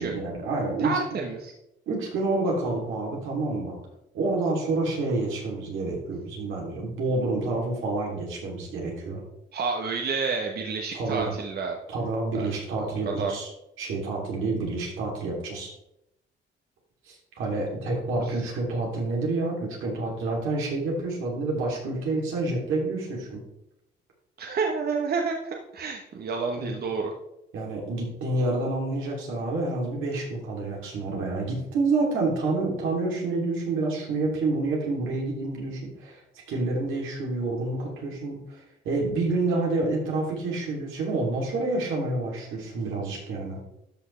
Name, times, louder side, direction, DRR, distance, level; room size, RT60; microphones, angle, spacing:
voice 1, 0.0-1.2 1.9-3.8 4.1-9.2 10.9-11.4 11.9-13.5 13.8-15.7 17.1-23.4 26.6-26.7 27.5-36.2 36.5-43.6, right 2 dB, 85° right, -2 dB, 3.0 m, -28 dB
voice 2, 0.8-1.5 9.5-11.8 12.3-12.5 12.8-13.4 18.2-18.4 24.4-27.1, right 4 dB, 50° right, 2 dB, 1.1 m, -29 dB
12.5 x 5.8 x 3.3 m, 0.84 s
cardioid pair, 90°, 20 cm